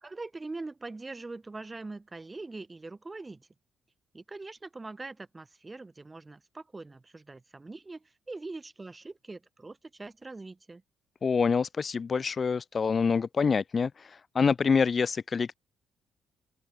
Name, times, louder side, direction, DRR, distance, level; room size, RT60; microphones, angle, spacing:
voice 1, 0.0-3.5 4.1-10.8, right 3 dB, 20° right, 3.9 m, -42 dB
voice 2, 11.2-13.9 14.3-15.5, left 5 dB, 40° left, 1.1 m, -26 dB
open air
cardioid pair, 90°, 0 cm